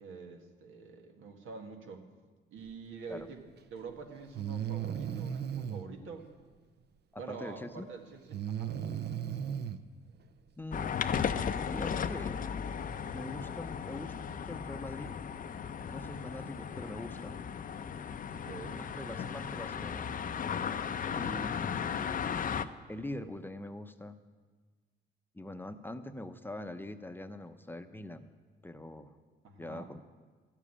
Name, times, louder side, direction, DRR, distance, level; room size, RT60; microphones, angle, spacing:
voice 1, 0.0-2.1 2.5-3.4 3.7-6.3 7.2-8.8 18.3-18.8 29.4-29.9, right 5 dB, 80° right, 3 dB, 1.8 m, -46 dB
Breathing, 3.5-3.6 4.3-5.8 8.3-9.8, right 9 dB, 60° right, 0.7 m, -35 dB
voice 2, 7.1-7.9 10.6-11.1 11.7-12.4 13.1-14.1 14.5-15.1 15.9-17.4 18.6-20.1 21.2-22.2 22.9-24.2 25.3-28.3 28.6-29.2 29.6-30.0, left 1 dB, 10° left, 8 dB, 0.7 m, -43 dB
sound 1, 10.7-22.7, left 7 dB, 45° left, 0.6 m, -36 dB
13.5 x 7.3 x 9.8 m, 1.4 s
cardioid pair, 90°, 20 cm